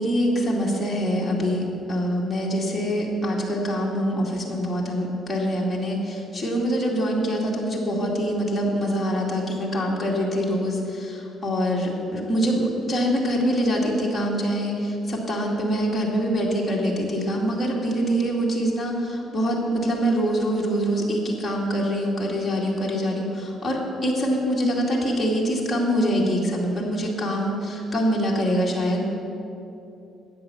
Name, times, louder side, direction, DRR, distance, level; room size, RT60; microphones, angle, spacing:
voice 1, 0.0-29.1, equal, 5° left, -5 dB, 2.3 m, -24 dB
13.5 x 8.9 x 7.0 m, 2.8 s
cardioid pair, 180°, 0 cm